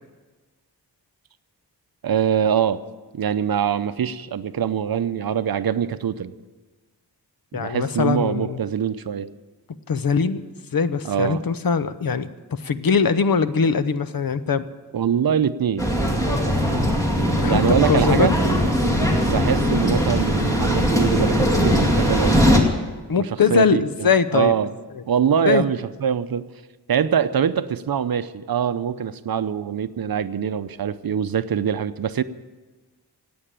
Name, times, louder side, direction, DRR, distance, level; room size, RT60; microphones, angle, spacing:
voice 1, 2.0-2.8 3.1-6.3 7.5-9.3 11.0-11.4 14.9-15.9 17.5-18.4 19.2-22.4 23.2-24.1 24.3-24.7 25.1-26.4 26.9-32.2, right 8 dB, 60° right, 13 dB, 0.7 m, -23 dB
voice 2, 7.5-8.6 9.9-10.4 10.7-14.6 17.4-17.6 17.9-18.4 19.6-19.8 23.1-24.5 25.4-25.6, left 6 dB, 60° left, 13 dB, 0.8 m, -21 dB
sound 1, 15.8-22.6, equal, 10° left, 2.3 m, -20 dB
17.0 x 8.8 x 8.9 m, 1.3 s
wide cardioid pair, 130°, 40 cm